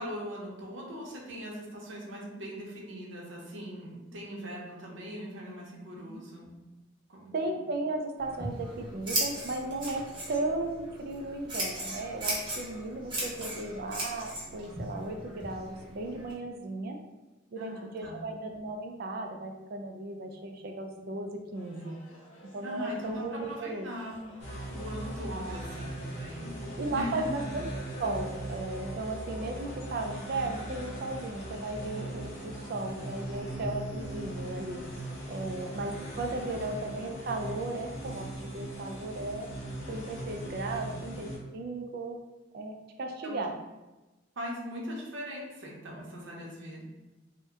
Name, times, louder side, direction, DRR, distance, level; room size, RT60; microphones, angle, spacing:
voice 1, 0.0-6.5 7.1-7.3 17.6-18.3 22.6-24.3 24.7-27.4 36.5-36.7 40.7-41.0 43.2-43.4 44.4-46.8, equal, 75° right, -2 dB, 0.8 m, -40 dB
voice 2, 7.3-17.0 17.5-22.0 22.5-23.9 25.3-25.7 26.8-27.7 28.0-34.8 35.3-39.5 39.9-42.2 42.5-43.5, right 2 dB, 50° right, 3 dB, 0.4 m, -36 dB
Scissors, 8.2-16.3, right 1 dB, 25° right, 0.8 m, -37 dB
sound 1, 21.5-37.9, left 1 dB, 80° left, 0.8 m, -53 dB
sound 2, 24.4-41.4, right 1 dB, 35° left, 0.7 m, -39 dB
2.7 x 2.1 x 3.5 m, 1.1 s
head